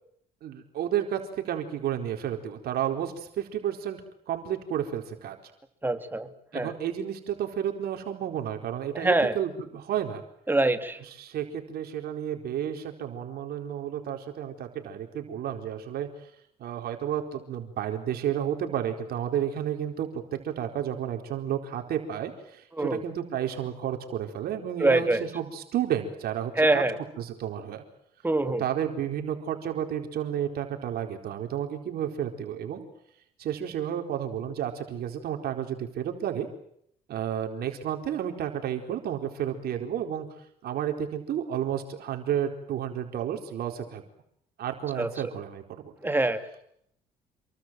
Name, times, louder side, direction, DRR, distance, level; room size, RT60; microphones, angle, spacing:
voice 1, 0.4-4.0 4.3-5.4 6.5-10.2 11.1-16.1 16.6-26.8 27.2-27.8 28.6-32.8 33.4-36.5 37.1-40.3 40.6-44.0 44.6-45.9, right 10 dB, 65° right, 4 dB, 4.3 m, -31 dB
voice 2, 5.8-6.7 8.9-9.4 10.5-11.0 22.8-23.0 24.8-25.2 26.6-27.0 28.2-28.6 45.0-45.1 46.0-46.5, right 2 dB, 10° right, 9 dB, 2.5 m, -24 dB
28.0 x 23.0 x 7.6 m, 0.72 s
cardioid pair, 110°, 17 cm